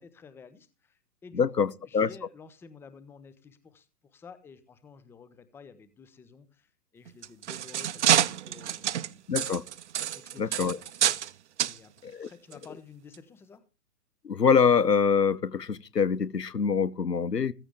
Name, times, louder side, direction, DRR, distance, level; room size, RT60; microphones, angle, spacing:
voice 1, 0.0-9.2 10.1-10.8 11.6-11.9 12.2-13.6, left 5 dB, 5° left, 0.8 m, -51 dB
voice 2, 1.3-2.1 9.3-9.6 10.4-10.8 12.0-12.3 14.2-17.5, left 6 dB, 85° left, 0.9 m, -25 dB
sound 1, 7.1-11.3 11.6-11.8 12.5-12.6 13.1-13.2, right 11 dB, 45° right, 0.7 m, -27 dB
16.0 x 14.5 x 3.5 m
figure-of-eight pair, 115°, 47 cm